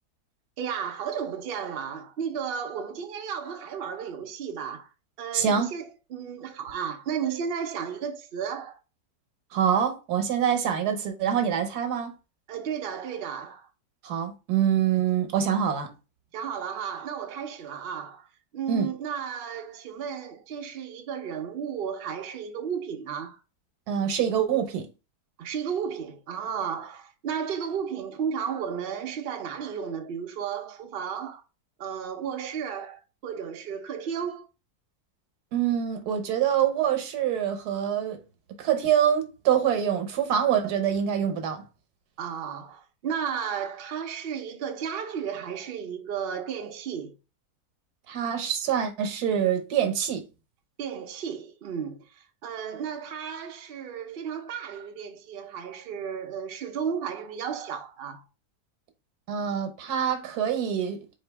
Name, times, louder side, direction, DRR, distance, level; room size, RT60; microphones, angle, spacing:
voice 1, 0.6-4.9 5.2-8.8 12.5-13.7 16.3-23.4 25.4-31.4 31.8-34.5 42.2-47.2 50.8-58.3, right 7 dB, 55° right, 0.6 m, -33 dB
voice 2, 5.3-5.7 9.5-12.1 14.0-15.9 18.7-18.9 23.9-24.9 35.5-38.2 38.6-41.6 48.1-50.2 59.3-61.0, right 9 dB, 75° right, 1.3 m, -25 dB
4.2 x 2.7 x 3.2 m
omnidirectional pair, 1.7 m